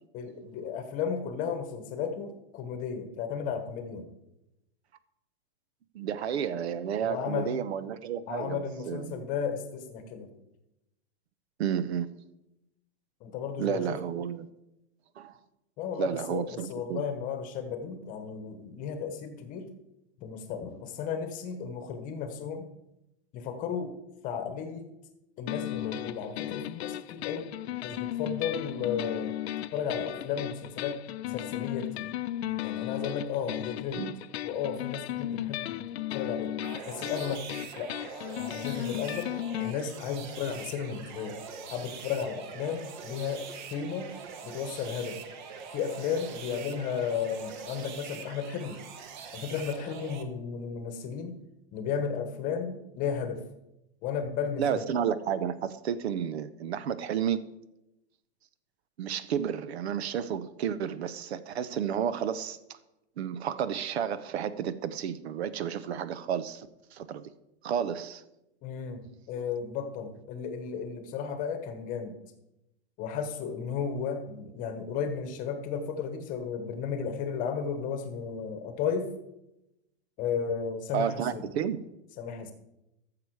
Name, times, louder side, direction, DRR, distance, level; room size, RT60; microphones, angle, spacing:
voice 1, 0.1-4.0 7.0-7.5 8.3-10.3 13.2-14.0 15.8-19.7 20.2-22.7 23.3-23.9 24.2-24.9 25.4-27.5 27.8-29.4 29.7-31.0 31.3-32.1 32.6-34.1 34.4-36.5 36.9-37.4 37.7-37.9 38.5-39.3 39.6-41.4 41.7-43.4 43.7-44.1 44.4-45.2 45.7-48.8 49.3-51.4 51.7-53.4 54.0-54.8 68.6-72.1 73.0-79.1 80.2-81.5 82.2-82.5, left 7 dB, 25° left, 7 dB, 1.1 m, -34 dB
voice 2, 5.9-9.2 11.6-12.1 13.6-14.5 15.2-15.3 16.0-17.0 34.0-34.1 54.6-57.4 59.0-62.6 63.2-67.3 67.6-68.2 80.9-81.8, right 8 dB, 75° right, 15 dB, 0.9 m, -31 dB
sound 1, 25.5-39.7, left 13 dB, 75° left, 0.6 m, -35 dB
sound 2, 36.6-50.2, right 5 dB, 45° right, 1.1 m, -43 dB
13.5 x 6.9 x 4.7 m, 0.90 s
supercardioid pair, 160°, 33 cm